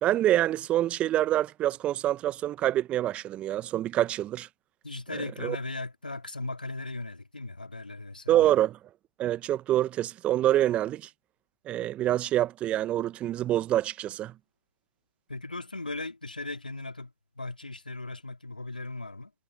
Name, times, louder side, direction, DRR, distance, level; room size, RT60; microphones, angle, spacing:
voice 1, 0.0-4.5 5.4-5.6 8.3-8.8 9.2-11.1 11.6-14.3, right 13 dB, 25° right, 1.1 m, -26 dB
voice 2, 4.8-8.5 15.3-19.3, left 2 dB, 85° left, 3.8 m, -37 dB
figure-of-eight pair, 110°, 5 cm